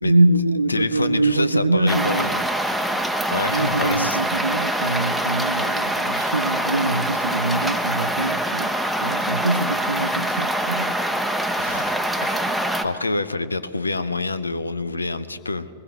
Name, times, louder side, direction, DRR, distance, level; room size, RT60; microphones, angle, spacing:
voice 1, 0.0-2.3 3.5-8.7 9.0-11.0, right 2 dB, 80° right, 0.5 m, -23 dB
voice 2, 0.7-2.5 3.3-4.2 11.6-11.9 12.2-15.7, left 3 dB, 80° left, 0.6 m, -27 dB
sound 1, 1.9-12.8, right 1 dB, ahead, 1.0 m, -24 dB
22.5 x 20.0 x 3.0 m
figure-of-eight pair, 95°, 0 cm